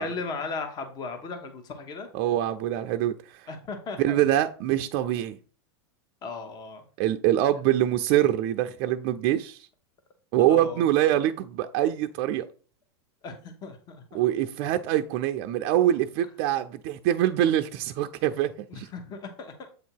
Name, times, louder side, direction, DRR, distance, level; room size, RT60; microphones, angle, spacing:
voice 1, 0.0-2.1 3.5-4.4 6.2-6.8 10.5-10.8 13.2-14.0 18.7-19.7, left 4 dB, 30° left, 1.1 m, -36 dB
voice 2, 2.1-3.5 4.0-5.4 7.0-9.6 10.3-12.5 14.1-18.9, right 12 dB, 45° right, 0.4 m, -24 dB
7.9 x 2.7 x 4.6 m
hypercardioid pair, 125°, 14 cm